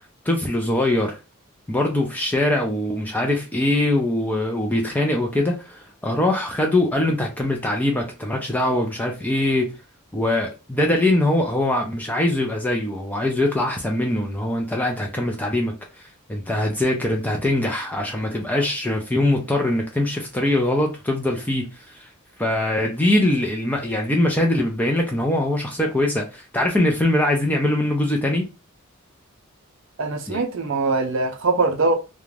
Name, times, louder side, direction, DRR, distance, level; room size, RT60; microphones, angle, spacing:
voice 1, 0.3-1.2 1.7-9.7 10.1-22.1 22.4-28.5 30.3-30.4, left 1 dB, 10° left, 0.4 m, -22 dB
voice 2, 30.0-32.0, right 3 dB, 60° right, 0.5 m, -22 dB
2.4 x 2.1 x 3.1 m
head